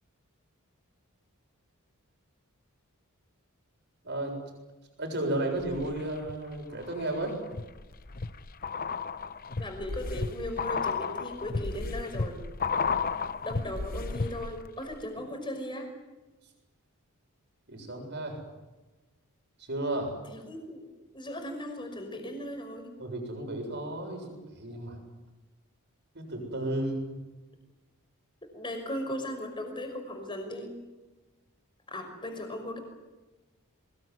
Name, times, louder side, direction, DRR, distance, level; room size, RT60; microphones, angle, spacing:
voice 1, 4.0-4.4 5.0-7.4 17.7-18.4 19.6-20.1 23.0-25.0 26.1-27.2, right 1 dB, 50° right, 4 dB, 7.4 m, -33 dB
sound 1, 5.6-6.3 6.8-14.7 14.9-15.0, left 4 dB, 40° left, 0.9 m, -33 dB
voice 2, 9.6-12.4 13.4-15.9 20.3-22.9 28.5-30.8 31.9-32.8, left 1 dB, 20° left, 5 dB, 5.9 m, -37 dB
23.5 x 21.5 x 9.6 m, 1.1 s
head